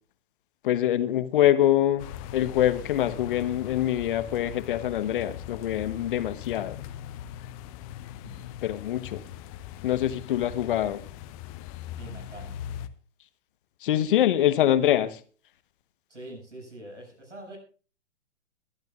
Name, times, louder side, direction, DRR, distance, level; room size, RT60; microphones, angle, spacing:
voice 1, 0.6-2.1 2.3-6.8 8.6-9.2 9.8-11.0 13.8-15.2, left 12 dB, 45° left, 1.2 m, -24 dB
sound 1, 2.0-12.9, left 11 dB, 30° left, 1.0 m, -40 dB
voice 2, 12.0-12.6 16.1-17.6, right 1 dB, 80° right, 7.7 m, -44 dB
22.0 x 12.0 x 2.4 m
figure-of-eight pair, 115°, 35 cm